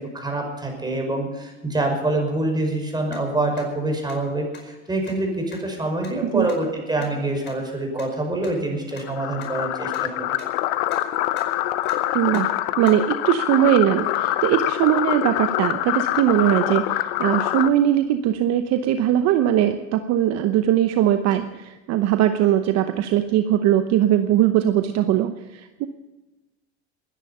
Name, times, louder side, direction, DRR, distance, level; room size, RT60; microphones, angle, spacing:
voice 1, 0.0-10.4, right 2 dB, 10° right, 2 dB, 5.5 m, -26 dB
sound 1, 3.1-3.2 3.6-3.7 4.1-4.2 4.5-4.6 5.1-5.2 5.5-5.6 6.0-6.1 6.5-6.6 7.0-7.1 7.5-7.6 8.0-8.1 8.4-8.5 9.0-9.1 9.4-9.5 9.9-10.0 10.4-10.5 10.9-11.0 11.3-11.5 11.9-12.0 12.3-12.4 12.9-13.0, left 6 dB, 30° left, 5.1 m, -41 dB
sound 2, 9.1-17.7, left 15 dB, 65° left, 1.0 m, -25 dB
voice 2, 12.1-25.9, right 11 dB, 50° right, 9 dB, 0.9 m, -20 dB
21.5 x 10.5 x 5.6 m, 1.1 s
supercardioid pair, 100°, 34 cm